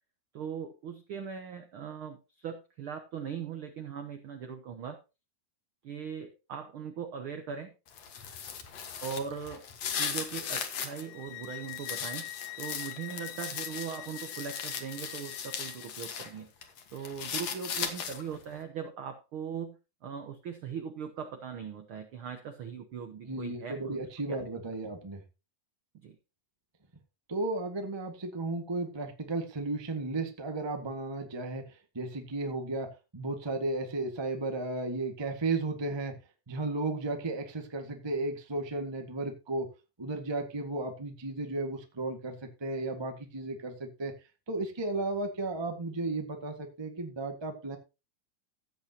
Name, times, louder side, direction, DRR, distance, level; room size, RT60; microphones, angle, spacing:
voice 1, 0.3-5.0 5.8-7.7 9.0-9.7 9.9-16.5 16.9-24.0 26.0-26.2, right 7 dB, 75° right, 7 dB, 1.2 m, -40 dB
sound 1, 7.9-11.0 11.4-16.3 16.6-18.4, left 7 dB, 55° left, 2.5 m, -37 dB
sound 2, 11.0-15.9, left 19 dB, 80° left, 2.2 m, -44 dB
voice 2, 23.2-25.2 27.3-36.1 36.5-39.7 40.0-44.1 44.5-47.8, right 2 dB, 25° right, 5 dB, 0.5 m, -34 dB
15.5 x 8.4 x 2.9 m, 0.28 s
omnidirectional pair, 3.8 m